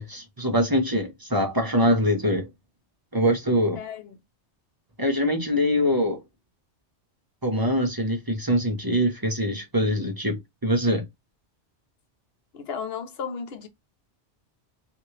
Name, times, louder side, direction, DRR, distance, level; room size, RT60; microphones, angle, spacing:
voice 1, 0.0-2.5 3.1-3.8 5.0-6.2 7.4-10.4 10.6-11.0, equal, 25° right, 0.7 m, -23 dB
voice 2, 3.8-4.2 12.5-13.7, left 6 dB, 65° left, 0.9 m, -34 dB
3.1 x 2.6 x 2.7 m
omnidirectional pair, 1.2 m